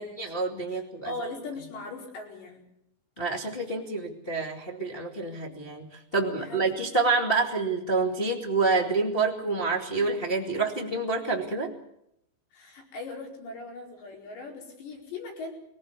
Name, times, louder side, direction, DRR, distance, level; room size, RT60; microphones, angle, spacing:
voice 1, 0.0-1.1 3.2-11.7, right 3 dB, 35° left, -1 dB, 0.9 m, -28 dB
voice 2, 0.7-2.6 6.3-6.6 12.5-15.5, left 3 dB, 65° left, 2 dB, 6.9 m, -39 dB
23.5 x 18.0 x 8.3 m, 0.77 s
omnidirectional pair, 5.5 m